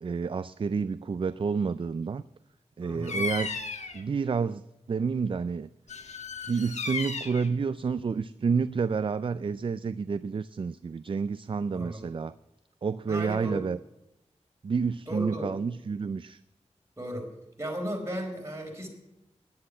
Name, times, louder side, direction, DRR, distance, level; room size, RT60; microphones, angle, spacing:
voice 1, 0.0-2.2 2.8-3.6 3.9-4.6 4.9-5.7 6.5-12.3 12.8-13.8 14.6-16.4, right 5 dB, 45° right, 15 dB, 0.4 m, -29 dB
voice 2, 2.8-3.2 11.7-12.0 13.1-13.6 15.1-15.5 17.0-17.3 17.6-18.9, equal, 25° right, 0 dB, 4.5 m, -35 dB
Bird vocalization bird call bird song, 3.0-4.0 5.9-7.5, left 4 dB, 75° left, 1.4 m, -34 dB
10.5 x 9.8 x 8.7 m, 0.96 s
wide cardioid pair, 75°, 12 cm